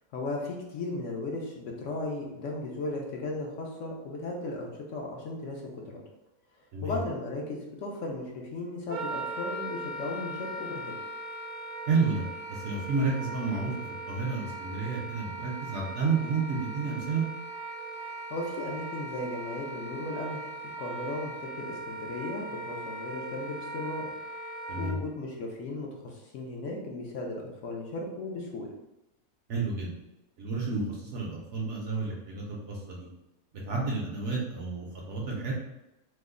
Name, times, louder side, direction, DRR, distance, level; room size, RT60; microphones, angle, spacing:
voice 1, 0.1-5.8 6.8-10.9 18.3-20.4 20.8-24.1 24.8-28.7, left 2 dB, 65° left, 0 dB, 0.8 m, -36 dB
Wind instrument woodwind instrument, 8.9-25.0, right 2 dB, 90° right, 0.5 m, -39 dB
voice 2, 11.9-13.7 14.1-17.2 24.7-25.0 29.5-29.9 30.4-33.1 33.6-35.5, right 4 dB, 60° right, -3 dB, 0.8 m, -30 dB
3.1 x 2.1 x 3.6 m, 0.92 s
omnidirectional pair, 1.6 m